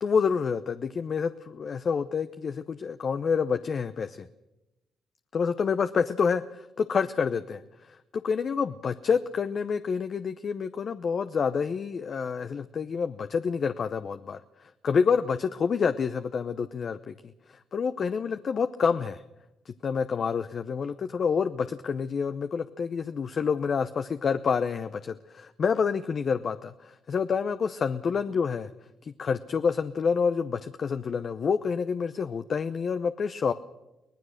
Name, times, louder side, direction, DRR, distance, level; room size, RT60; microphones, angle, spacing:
voice 1, 0.0-4.3 5.3-8.0 8.2-17.1 17.5-19.2 19.7-28.7 29.0-33.5, left 6 dB, 50° left, 9 dB, 0.8 m, -28 dB
24.0 x 17.5 x 6.5 m, 0.98 s
supercardioid pair, 65°, 0 cm